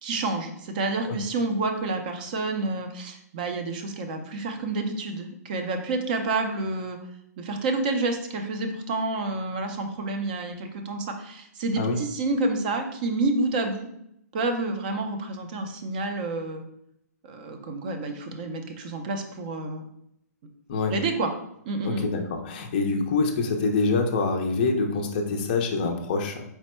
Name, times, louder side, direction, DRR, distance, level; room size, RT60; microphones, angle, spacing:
voice 1, 0.0-7.0 7.4-13.9 14.3-16.6 17.2-19.9 20.9-21.3 21.7-22.1, right 3 dB, 30° right, 5 dB, 0.5 m, -29 dB
voice 2, 21.8-26.4, left 3 dB, 30° left, 3 dB, 0.4 m, -25 dB
4.4 x 2.1 x 4.2 m, 0.76 s
hypercardioid pair, 165°, 9 cm